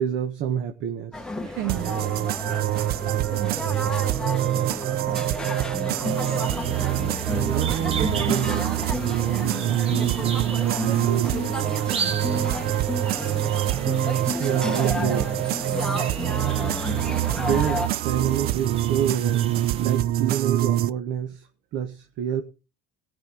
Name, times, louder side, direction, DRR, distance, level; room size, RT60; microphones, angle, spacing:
voice 1, 0.0-1.2 7.3-8.6 14.4-15.2 17.4-21.4 21.7-22.4, right 9 dB, 65° right, 1.6 m, -27 dB
sound 1, 1.1-17.9, left 2 dB, 5° left, 1.3 m, -32 dB
voice 2, 1.4-2.2 3.3-3.7 6.0-6.6 8.0-8.8 9.3-13.0 13.6-13.9 14.5-15.3 16.1-16.6, right 12 dB, 85° right, 1.4 m, -35 dB
sound 2, 1.7-20.9, right 13 dB, 50° right, 0.5 m, -25 dB
sound 3, 6.0-20.0, right 5 dB, 30° right, 1.1 m, -37 dB
17.5 x 6.1 x 5.2 m
cardioid pair, 135°, 20 cm